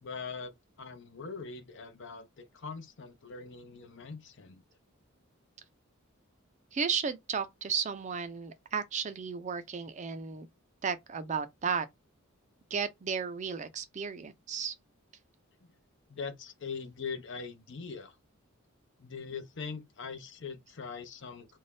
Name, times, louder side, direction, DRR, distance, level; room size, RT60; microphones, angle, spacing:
voice 1, 0.0-4.6 15.6-15.7 16.1-18.2 19.0-21.6, left 5 dB, 60° left, 0.6 m, -42 dB
voice 2, 6.7-10.5 10.8-11.9 12.7-14.7, right 6 dB, 35° right, 0.4 m, -34 dB
2.6 x 2.2 x 3.2 m
head